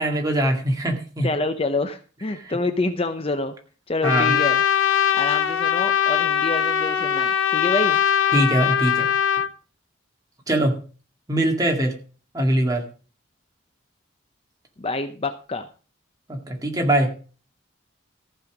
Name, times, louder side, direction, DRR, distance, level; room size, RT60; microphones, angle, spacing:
voice 1, 0.0-1.3 2.5-2.6 4.0-4.3 8.3-9.1 10.5-10.8 11.3-11.9 12.3-12.8 16.3-17.1, right 1 dB, 20° right, 1 dB, 2.0 m, -22 dB
voice 2, 1.2-3.5 3.9-4.6 5.1-8.0 14.8-15.7, left 2 dB, 30° left, 8 dB, 0.6 m, -27 dB
Trumpet, 4.0-9.5, left 9 dB, 75° left, 0.7 m, -21 dB
14.5 x 5.6 x 6.0 m, 0.38 s
head